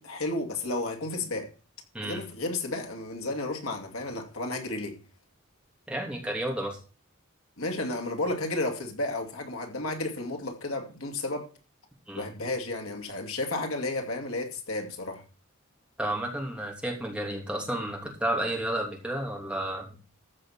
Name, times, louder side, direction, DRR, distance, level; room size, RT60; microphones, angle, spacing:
voice 1, 0.0-1.5 2.0-5.0 7.6-11.5 12.1-15.2, left 2 dB, 85° left, 2.5 m, -32 dB
voice 2, 5.9-6.8 12.1-12.3 16.0-20.0, right 1 dB, 5° right, 2.9 m, -31 dB
14.0 x 6.3 x 5.8 m
head